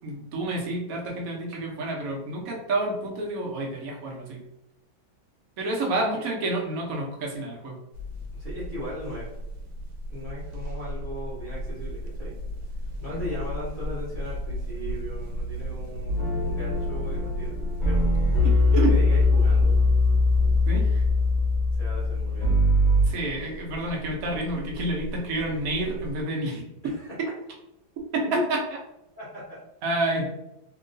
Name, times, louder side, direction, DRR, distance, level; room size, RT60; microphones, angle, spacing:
voice 1, 0.0-4.4 5.6-7.8 13.1-13.2 18.4-18.9 20.7-21.0 23.0-26.8 28.1-28.6 29.8-30.3, right 2 dB, 55° right, -1 dB, 1.0 m, -29 dB
sound 1, 7.9-26.2, equal, 90° right, 1.4 m, -35 dB
voice 2, 8.3-9.3 10.1-12.4 13.0-18.2 18.7-19.8 21.7-22.6 26.9-27.1 28.2-28.4 29.2-29.6, equal, 30° right, -8 dB, 1.1 m, -37 dB
sound 2, 16.1-23.1, left 2 dB, 40° left, 0.6 m, -22 dB
2.9 x 2.8 x 2.6 m, 0.85 s
omnidirectional pair, 2.2 m